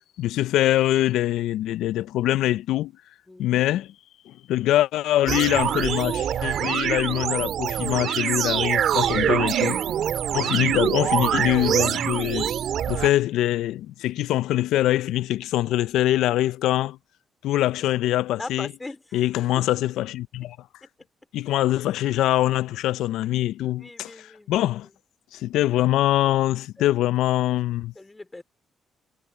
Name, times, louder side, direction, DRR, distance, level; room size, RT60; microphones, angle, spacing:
voice 1, 0.2-2.9 3.4-3.9 4.3-9.8 10.3-12.5 12.9-17.0 17.4-18.7 19.1-20.6 21.3-24.9 25.3-27.9, left 14 dB, 85° left, 0.3 m, -23 dB
voice 2, 3.3-3.6 10.1-10.3 18.4-19.6 20.8-20.9 23.8-24.7 26.8-26.9 28.0-28.4, left 2 dB, 15° left, 3.5 m, -41 dB
sound 1, 5.3-13.1, right 9 dB, 70° right, 1.7 m, -24 dB
cardioid pair, 90°, 0 cm